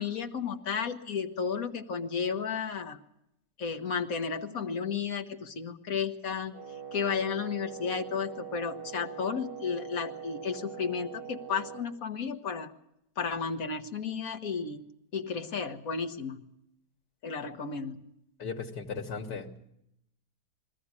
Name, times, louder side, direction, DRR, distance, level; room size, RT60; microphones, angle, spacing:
voice 1, 0.0-3.0 3.6-6.5 6.9-12.7 13.2-14.8 15.1-16.5 17.2-18.0, left 6 dB, 60° left, 7 dB, 1.6 m, -33 dB
Wind instrument woodwind instrument, 6.5-11.9, right 8 dB, 30° right, 7.1 m, -42 dB
voice 2, 18.4-19.5, left 5 dB, 85° left, 1 dB, 2.0 m, -36 dB
22.5 x 14.5 x 9.7 m, 0.80 s
omnidirectional pair, 1.8 m